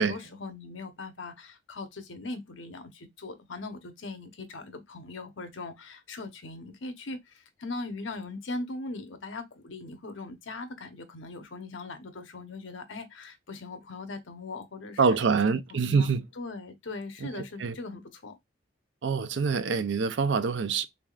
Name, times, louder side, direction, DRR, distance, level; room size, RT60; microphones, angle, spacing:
voice 1, 0.0-18.4, left 3 dB, 85° left, 0.9 m, -40 dB
voice 2, 15.0-16.2 17.3-17.7 19.0-20.8, right 5 dB, 70° right, 0.5 m, -25 dB
3.6 x 3.4 x 2.3 m
head